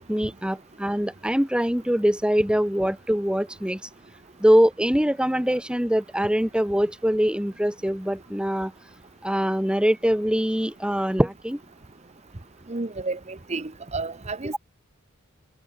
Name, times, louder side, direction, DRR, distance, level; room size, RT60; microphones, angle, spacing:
voice 1, 0.0-3.8 4.4-8.7 9.2-11.6, equal, 5° right, 1.2 m, -23 dB
voice 2, 12.7-14.6, right 3 dB, 30° right, 1.0 m, -31 dB
head